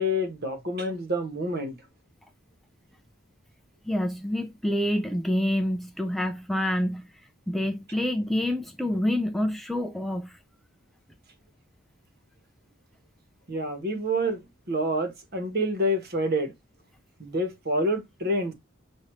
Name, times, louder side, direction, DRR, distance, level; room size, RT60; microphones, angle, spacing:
voice 1, 0.0-1.7 13.5-14.4 14.7-16.5 17.2-18.5, equal, 50° right, 1.2 m, -27 dB
voice 2, 3.9-7.1 7.5-10.4, left 1 dB, ahead, 0.4 m, -27 dB
6.2 x 2.6 x 3.1 m
head